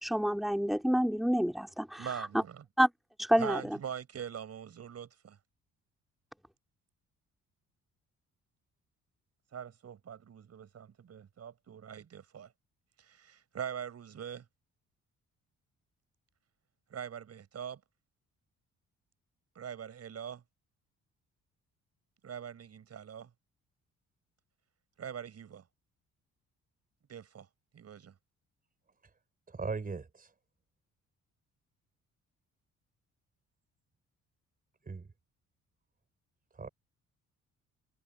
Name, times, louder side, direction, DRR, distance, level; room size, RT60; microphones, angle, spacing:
voice 1, 0.0-2.4 2.8-2.9 3.2-3.8, equal, ahead, 2.9 m, -28 dB
voice 2, 2.0-2.6 3.4-5.4 9.5-12.5 13.0-14.4 16.9-17.8 19.6-20.4 22.2-23.3 25.0-25.6 27.1-27.5 27.7-28.1, right 8 dB, 55° right, 7.1 m, -42 dB
voice 3, 29.5-30.3 34.9-35.1 36.6-36.7, right 4 dB, 30° right, 4.3 m, -38 dB
cardioid pair, 90°, 30 cm